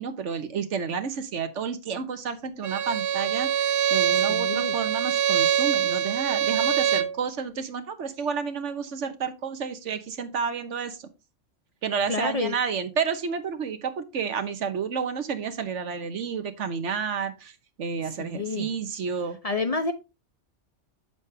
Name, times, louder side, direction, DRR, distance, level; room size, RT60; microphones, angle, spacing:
voice 1, 0.0-11.0 11.8-17.5 17.8-19.4, right 6 dB, 75° right, 1.3 m, -30 dB
Bowed string instrument, 2.6-7.2, right 9 dB, 55° right, 0.8 m, -24 dB
voice 2, 4.3-4.7 12.1-12.6 18.2-18.7 19.4-19.9, left 3 dB, 35° left, 0.7 m, -28 dB
8.3 x 7.0 x 3.3 m
omnidirectional pair, 1.3 m